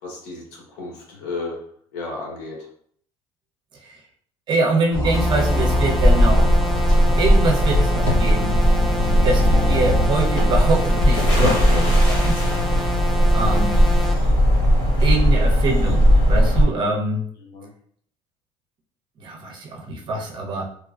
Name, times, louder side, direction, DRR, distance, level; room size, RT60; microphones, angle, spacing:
voice 1, 0.0-1.6 1.9-2.6 13.4-13.6 17.4-17.7, left 3 dB, 85° left, -1 dB, 1.0 m, -33 dB
voice 2, 4.5-6.5 7.2-8.6 9.2-12.4 13.3-13.8 15.0-17.2 19.2-20.7, right 3 dB, 40° right, 1 dB, 0.7 m, -24 dB
sound 1, 4.9-10.1, equal, 35° left, 1.1 m, -25 dB
sound 2, 5.1-14.1, left 1 dB, ahead, 0.4 m, -29 dB
sound 3, 5.5-16.6, equal, 60° left, 1.2 m, -18 dB
3.3 x 2.1 x 2.4 m, 0.62 s
cardioid pair, 115°, 12 cm